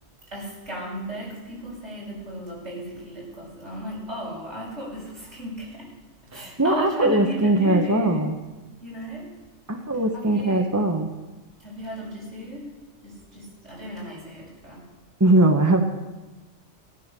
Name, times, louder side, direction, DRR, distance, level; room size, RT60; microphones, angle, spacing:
voice 1, 0.3-5.9 6.3-8.2 8.8-9.3 10.1-10.6 11.6-12.7 13.0-14.8, equal, 70° right, -5 dB, 7.4 m, -35 dB
voice 2, 6.3-8.4 9.7-11.1 15.2-15.8, right 2 dB, 15° right, 4 dB, 1.1 m, -20 dB
14.5 x 12.5 x 6.8 m, 1.2 s
omnidirectional pair, 1.3 m